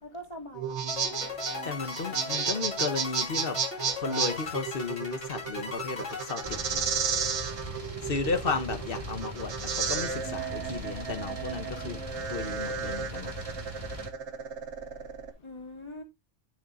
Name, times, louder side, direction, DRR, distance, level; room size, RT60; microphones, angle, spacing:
voice 1, 0.0-1.3 15.4-16.0, left 1 dB, 25° left, 2.5 m, -43 dB
sound 1, 0.5-15.3, right 6 dB, 70° right, 1.3 m, -33 dB
sound 2, 0.9-7.2, left 5 dB, 70° left, 2.9 m, -39 dB
voice 2, 1.6-3.6 4.0-6.8 8.0-12.0 12.3-13.3, left 4 dB, 50° left, 1.3 m, -34 dB
sound 3, 6.4-14.1, right 1 dB, 30° right, 1.6 m, -40 dB
10.5 x 7.3 x 2.5 m
omnidirectional pair, 1.2 m